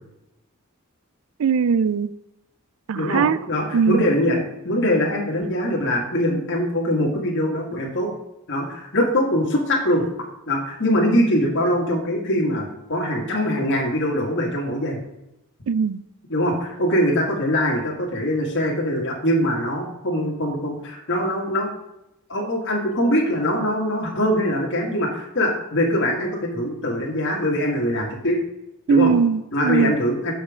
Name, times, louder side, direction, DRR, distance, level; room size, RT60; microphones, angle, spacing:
voice 1, 1.4-2.1 2.9-3.4 3.7-4.0 15.7-16.0 28.9-29.9, right 6 dB, 70° right, 16 dB, 0.4 m, -20 dB
voice 2, 3.0-8.1 8.5-10.0 10.5-15.0 16.3-21.7 22.3-28.4 28.9-29.1 29.5-30.3, equal, 60° left, -1 dB, 1.9 m, -22 dB
7.3 x 5.3 x 5.0 m, 0.86 s
head